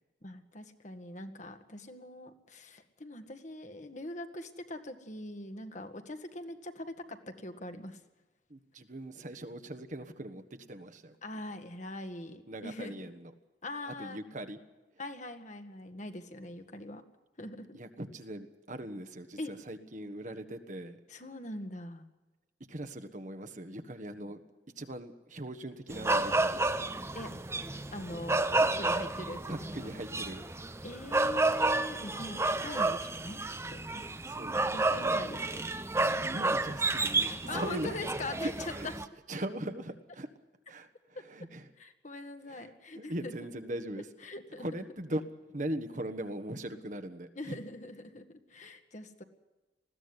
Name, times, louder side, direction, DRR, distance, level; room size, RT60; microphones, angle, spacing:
voice 1, 0.2-8.0 11.2-13.1 13.6-14.2 15.0-17.0 17.4-17.8 19.4-19.5 21.1-22.1 27.1-27.3 27.9-29.9 30.8-34.0 34.5-35.7 37.5-38.9 41.8-43.3 44.2-44.7 47.4-49.2, left 2 dB, 40° left, 6 dB, 1.7 m, -42 dB
voice 2, 8.5-10.4 10.7-11.2 12.5-13.3 13.9-14.6 17.7-21.0 22.7-24.4 24.8-26.6 29.5-30.4 34.3-35.2 36.1-37.9 38.4-38.9 39.3-40.3 40.7-41.7 42.5-44.0 44.6-45.2 45.5-47.6, right 1 dB, 45° right, 8 dB, 1.4 m, -40 dB
sound 1, 25.9-39.1, right 2 dB, 15° right, 0.8 m, -31 dB
20.5 x 15.5 x 9.7 m, 1.1 s
head